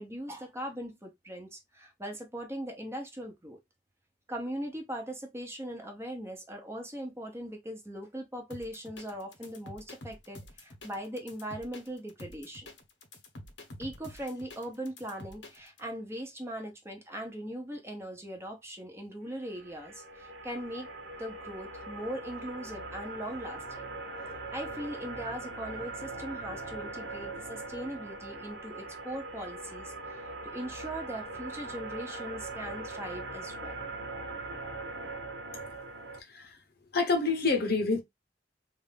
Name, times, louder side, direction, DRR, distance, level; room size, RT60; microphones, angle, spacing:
voice 1, 0.0-3.6 4.3-12.7 13.8-20.9 21.2-23.9 24.5-33.7, equal, 15° right, 1.0 m, -40 dB
sound 1, 8.5-15.8, left 1 dB, 85° left, 1.0 m, -48 dB
sound 2, 19.4-36.2, right 2 dB, 80° right, 1.0 m, -41 dB
voice 2, 36.2-36.6 36.9-38.0, left 4 dB, 60° left, 0.9 m, -28 dB
3.5 x 2.6 x 3.4 m
head